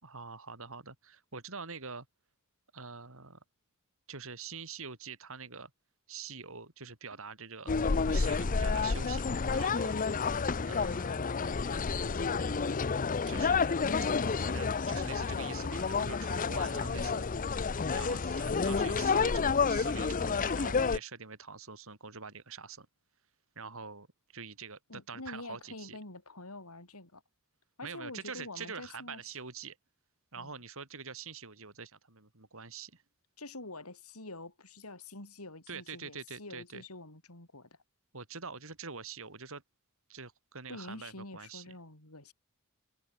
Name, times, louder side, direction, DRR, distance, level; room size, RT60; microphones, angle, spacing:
voice 1, 0.0-2.1 2.7-3.4 4.1-5.7 6.1-7.7 8.0-10.0 10.7-11.3 13.3-13.8 14.3-17.3 17.8-22.9 23.6-24.1 24.3-26.0 27.8-29.8 30.3-33.0 35.7-36.8 38.1-39.6 40.1-41.8, right 5 dB, 65° right, 4.1 m, -45 dB
sound 1, 7.7-21.0, left 5 dB, 40° left, 0.6 m, -30 dB
voice 2, 24.9-27.2 27.8-29.2 30.3-30.5 33.4-37.7 40.7-42.3, left 2 dB, 85° left, 7.0 m, -46 dB
head